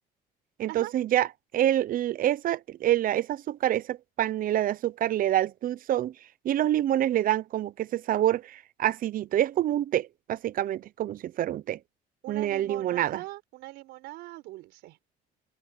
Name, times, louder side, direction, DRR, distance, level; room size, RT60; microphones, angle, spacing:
voice 1, 0.6-1.3 1.5-6.1 6.4-11.8 12.3-13.2, right 12 dB, 55° right, 0.6 m, -27 dB
voice 2, 12.2-15.0, right 18 dB, 90° right, 5.0 m, -41 dB
open air
cardioid pair, 110°, 17 cm